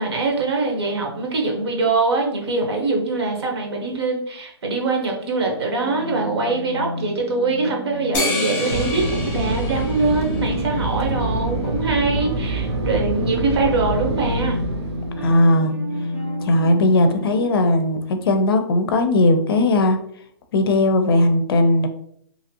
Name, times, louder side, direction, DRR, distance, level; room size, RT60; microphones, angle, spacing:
voice 1, 0.0-14.6, right 3 dB, 70° right, 1 dB, 1.0 m, -23 dB
sound 1, 5.8-17.5, left 1 dB, 35° right, 0.5 m, -30 dB
sound 2, 8.1-10.9, left 2 dB, 15° left, 0.7 m, -28 dB
Fixed-wing aircraft airplane, 8.7-15.3, right 2 dB, 90° right, 0.6 m, -26 dB
voice 2, 15.2-15.7 16.4-20.0 20.5-21.9, left 1 dB, 60° left, 8 dB, 0.5 m, -17 dB
2.8 x 2.5 x 2.8 m, 0.67 s
hypercardioid pair, 165°, 14 cm